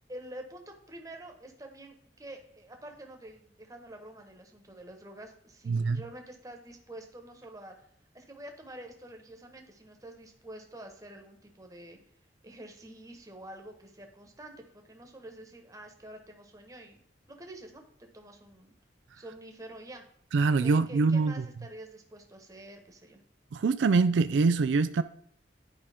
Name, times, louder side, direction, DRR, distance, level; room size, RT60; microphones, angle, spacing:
voice 1, 0.1-7.7 8.1-12.0 12.4-17.0 17.3-18.8 19.1-20.0 20.6-23.2, right 1 dB, 20° right, 1.2 m, -47 dB
voice 2, 5.7-6.0 20.3-21.5 23.5-25.0, right 4 dB, 85° right, 0.4 m, -24 dB
11.0 x 5.1 x 3.5 m
head